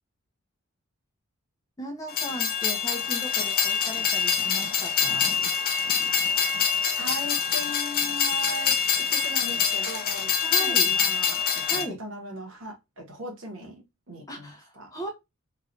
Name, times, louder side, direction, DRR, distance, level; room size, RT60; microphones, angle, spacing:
voice 1, 1.8-5.4 10.4-10.9 11.6-12.0 14.3-15.1, right 1 dB, 15° left, 0.8 m, -37 dB
Train, 2.1-11.9, left 7 dB, 45° left, 0.5 m, -25 dB
voice 2, 7.0-14.9, equal, 60° right, 1.3 m, -39 dB
3.2 x 2.7 x 2.6 m
head